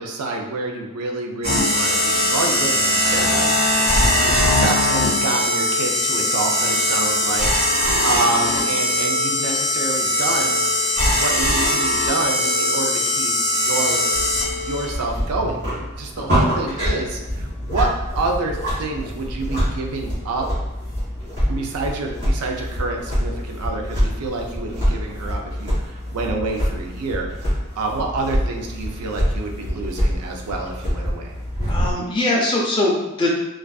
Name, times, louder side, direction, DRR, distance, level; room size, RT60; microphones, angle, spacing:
voice 1, 0.0-10.6 11.1-20.5 21.5-31.4, right 3 dB, 90° right, 2 dB, 0.4 m, -28 dB
sound 1, 1.4-14.8, left 1 dB, 70° right, 1.3 m, -20 dB
sound 2, 14.1-31.9, equal, 50° right, 1.2 m, -25 dB
voice 2, 31.7-33.3, left 2 dB, 20° left, -2 dB, 0.4 m, -22 dB
2.4 x 2.3 x 2.2 m, 1.0 s
head